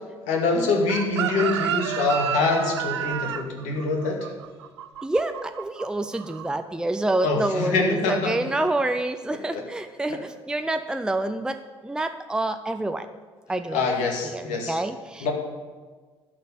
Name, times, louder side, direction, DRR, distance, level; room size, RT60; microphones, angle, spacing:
voice 1, 0.3-4.3 7.2-8.7 9.3-9.7 10.1-10.2 13.7-14.8 15.2-15.3, left 3 dB, 60° left, 1 dB, 2.3 m, -25 dB
Chicken rooster, 0.9-5.8 6.1-6.5, right 10 dB, 75° right, 0.5 m, -30 dB
voice 2, 5.0-11.6 11.8-13.1 13.5-13.9 14.3-15.3, right 2 dB, 5° right, 8 dB, 0.6 m, -27 dB
11.5 x 6.6 x 8.3 m, 1.4 s
figure-of-eight pair, 55°, 14 cm